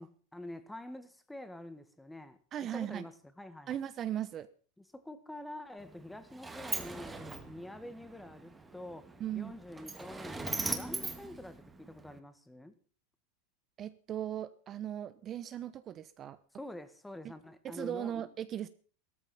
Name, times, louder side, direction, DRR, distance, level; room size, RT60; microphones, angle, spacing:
voice 1, 0.0-2.4 2.7-3.8 4.8-12.7 16.6-18.2, left 1 dB, 5° left, 1.8 m, -47 dB
voice 2, 2.5-3.0 3.7-4.5 9.2-9.5 13.8-16.4 17.6-18.7, right 10 dB, 30° right, 0.9 m, -38 dB
Sliding door, 5.8-12.2, right 3 dB, 10° right, 2.1 m, -41 dB
15.0 x 14.0 x 5.7 m
supercardioid pair, 130°, 0 cm